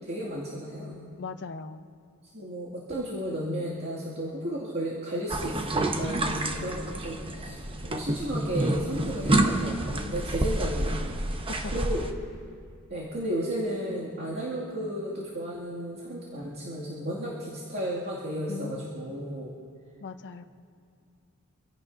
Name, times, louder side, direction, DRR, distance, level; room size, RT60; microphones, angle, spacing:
voice 1, 0.0-1.1 2.3-11.0 11.7-12.0 12.9-19.5, equal, 50° right, -6 dB, 2.4 m, -33 dB
voice 2, 1.2-1.8 11.5-12.1 18.5-19.2 20.0-20.4, left 4 dB, 55° left, 9 dB, 0.6 m, -40 dB
sound 1, 5.3-12.1, right 1 dB, 25° right, 0.9 m, -28 dB
26.5 x 16.5 x 2.7 m, 2.4 s
head